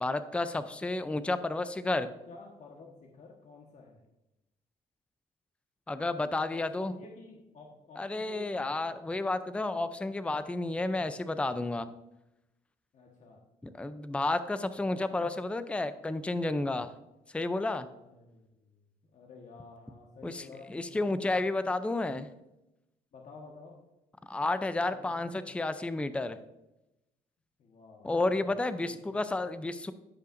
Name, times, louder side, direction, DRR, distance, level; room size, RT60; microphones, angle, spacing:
voice 1, 0.0-2.1 5.9-6.9 8.0-11.9 13.7-16.9 17.3-17.9 20.2-20.4 20.7-22.3 24.2-26.4 28.0-29.9, left 2 dB, 10° left, 12 dB, 0.4 m, -31 dB
voice 2, 2.1-4.0 6.5-9.0 12.9-13.4 14.6-15.3 17.9-18.8 19.1-21.2 23.1-23.8 24.9-25.5 27.6-29.0, left 3 dB, 50° left, -1 dB, 1.3 m, -52 dB
14.5 x 5.6 x 2.6 m, 0.93 s
cardioid pair, 100°, 15 cm